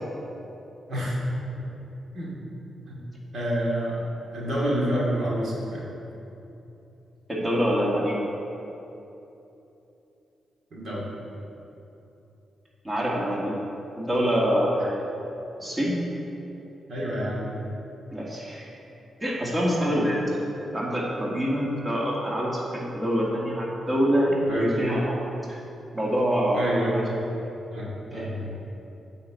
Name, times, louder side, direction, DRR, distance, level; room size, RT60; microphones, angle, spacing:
voice 1, 3.3-4.0 4.3-5.9 10.7-11.1 14.8-14.9 16.9-17.5 24.5-24.8 26.5-27.2 27.7-28.5, equal, 70° right, -5 dB, 2.4 m, -28 dB
voice 2, 7.3-8.2 12.8-13.6 14.0-14.7 15.6-16.0 18.1-18.7 19.2-20.4 20.7-25.2 25.5-25.6 25.9-27.0 28.1-28.3, equal, 25° right, -4 dB, 2.2 m, -25 dB
8.4 x 5.2 x 7.7 m, 3.0 s
supercardioid pair, 55°, 0 cm